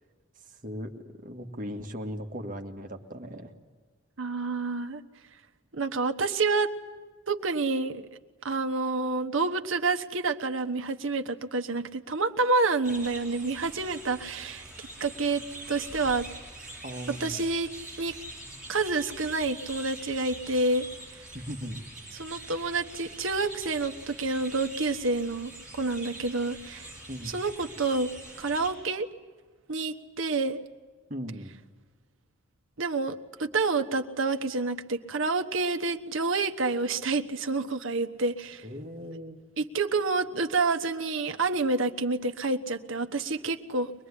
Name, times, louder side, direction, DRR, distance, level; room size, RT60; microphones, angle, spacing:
voice 1, 0.6-3.5 16.8-17.4 21.3-21.8 27.1-27.4 31.1-31.6 38.6-39.4, equal, 45° right, 4 dB, 1.8 m, -38 dB
voice 2, 4.2-5.0 5.7-6.7 7.3-8.0 8.4-16.3 17.2-17.7 18.0-18.1 18.7-20.9 22.1-26.9 27.3-28.1 28.4-29.1 29.7-30.6 32.8-38.6 39.6-43.9, right 3 dB, 80° right, 6 dB, 1.2 m, -28 dB
sound 1, 12.8-28.7, right 1 dB, 5° right, 7.6 m, -44 dB
24.0 x 20.5 x 9.9 m, 1.4 s
head